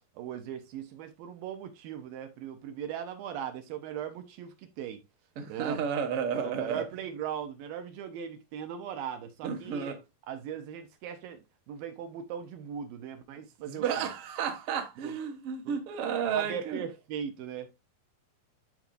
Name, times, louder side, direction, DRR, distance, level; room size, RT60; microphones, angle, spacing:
voice 1, 0.2-5.0 5.5-5.8 6.3-10.0 10.3-14.1 15.0-15.1 15.7-15.8 16.3-17.7, right 9 dB, 75° right, 2.4 m, -39 dB
voice 2, 5.3-6.8 9.4-10.0 13.7-16.8, right 7 dB, 55° right, 1.5 m, -32 dB
12.0 x 4.4 x 2.6 m
omnidirectional pair, 4.4 m